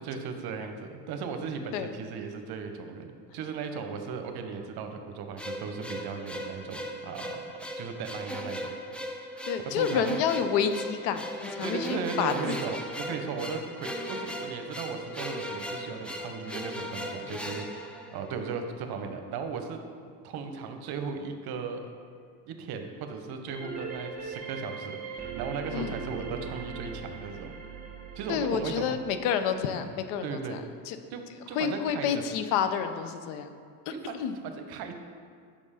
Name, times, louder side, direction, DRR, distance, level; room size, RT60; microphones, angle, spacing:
voice 1, 0.0-7.4 7.7-8.7 9.6-10.2 11.6-21.9 22.4-27.6 28.1-29.0 30.2-30.6 31.1-32.2 33.9-34.2 34.4-34.9, right 5 dB, 55° right, 6 dB, 0.8 m, -37 dB
sound 1, 5.4-18.6, equal, 5° left, 0.3 m, -38 dB
voice 2, 9.5-12.6 25.7-25.9 28.3-31.0 31.5-33.5 33.9-34.4, left 7 dB, 75° left, 9 dB, 0.6 m, -29 dB
sound 2, 23.5-28.9, right 5 dB, 20° right, 1.1 m, -40 dB
5.3 x 5.2 x 4.9 m, 2.2 s
supercardioid pair, 95°, 45 cm